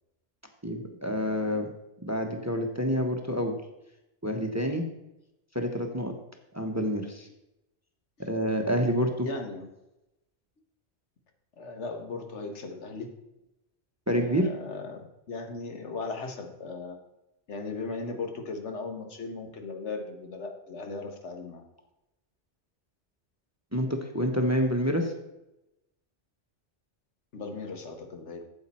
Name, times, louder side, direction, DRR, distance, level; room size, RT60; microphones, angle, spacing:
voice 1, 0.6-1.7 2.1-3.6 4.2-4.8 5.5-6.1 6.5-7.3 8.2-9.3 14.1-14.5 23.7-25.1, equal, 15° right, 4 dB, 0.9 m, -28 dB
voice 2, 9.3-9.7 11.6-13.1 14.2-17.0 17.5-21.6 27.3-28.4, left 3 dB, 80° left, 5 dB, 1.5 m, -37 dB
8.6 x 7.8 x 4.3 m, 0.92 s
omnidirectional pair, 1.2 m